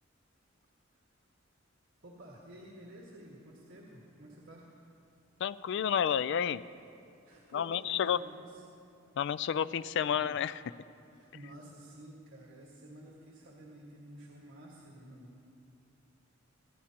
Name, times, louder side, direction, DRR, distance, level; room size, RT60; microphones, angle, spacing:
voice 1, 2.0-4.8 7.2-8.6 11.1-15.4, right 1 dB, 65° right, -4 dB, 1.7 m, -51 dB
voice 2, 5.4-6.6 7.5-8.2 9.2-10.6, left 8 dB, 60° left, 17 dB, 0.3 m, -30 dB
24.0 x 11.5 x 2.9 m, 2.6 s
head